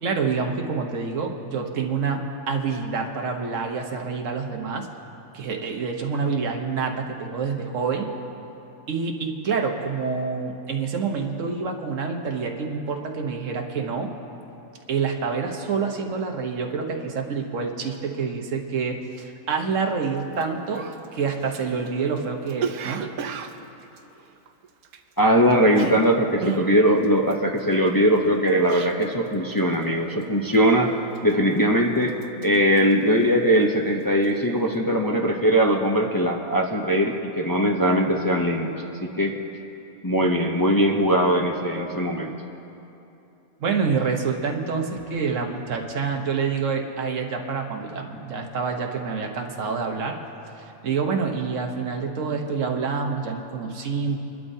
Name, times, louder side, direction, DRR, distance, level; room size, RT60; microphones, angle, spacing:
voice 1, 0.0-4.9 5.3-8.1 8.9-14.1 14.9-20.8 21.1-23.0 43.6-50.2 50.6-54.2, right 5 dB, 60° right, 3 dB, 1.4 m, -27 dB
Cough, 20.3-20.4 20.7-25.2 25.5-29.3 29.6-29.9 30.2-30.7 31.2-31.7 32.0-33.7 34.0-34.4, right 7 dB, 80° right, 1.1 m, -35 dB
voice 2, 25.2-30.9 31.2-32.1 32.4-39.3 40.0-42.3, equal, 30° left, 0 dB, 0.4 m, -20 dB
23.0 x 12.0 x 2.7 m, 2.9 s
omnidirectional pair, 1.5 m